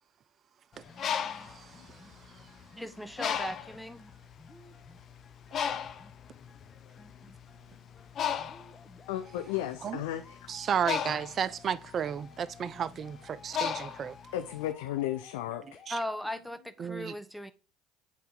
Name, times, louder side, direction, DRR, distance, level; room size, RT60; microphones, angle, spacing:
sound 1, 0.7-16.7, left 3 dB, 20° left, 1.3 m, -56 dB
Bird, 0.8-2.6 3.2-3.9 4.5-4.7 4.9-14.7, left 8 dB, 45° left, 0.8 m, -35 dB
voice 1, 1.4-2.0 9.8-10.0 10.5-14.1 15.9-16.0 16.8-17.1, right 8 dB, 40° right, 0.5 m, -33 dB
voice 2, 2.8-4.0 15.9-17.5, equal, ahead, 0.9 m, -37 dB
voice 3, 9.1-10.4 14.3-15.8, left 13 dB, 80° left, 0.6 m, -34 dB
8.4 x 4.3 x 3.9 m
hypercardioid pair, 80°, 0 cm